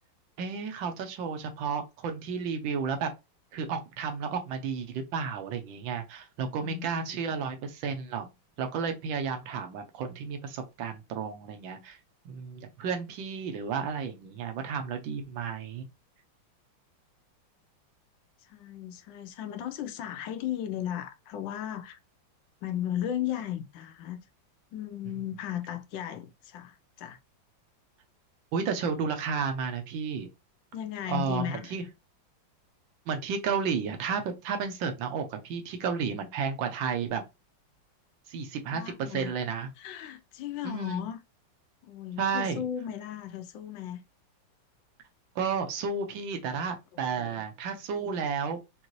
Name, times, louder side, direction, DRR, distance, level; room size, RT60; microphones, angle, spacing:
voice 1, 0.4-3.1 3.5-8.3 8.6-12.0 12.2-15.8 28.5-30.3 31.1-31.8 33.1-37.2 38.3-39.7 40.6-41.0 42.2-42.6 45.3-48.6, right 6 dB, 80° right, 1.5 m, -32 dB
voice 2, 6.6-7.4 18.4-22.0 22.6-24.2 24.7-27.2 30.7-31.7 38.7-39.3 39.8-41.2 41.9-44.0 46.9-47.3, left 11 dB, 80° left, 1.3 m, -36 dB
5.3 x 2.6 x 3.1 m
omnidirectional pair, 2.1 m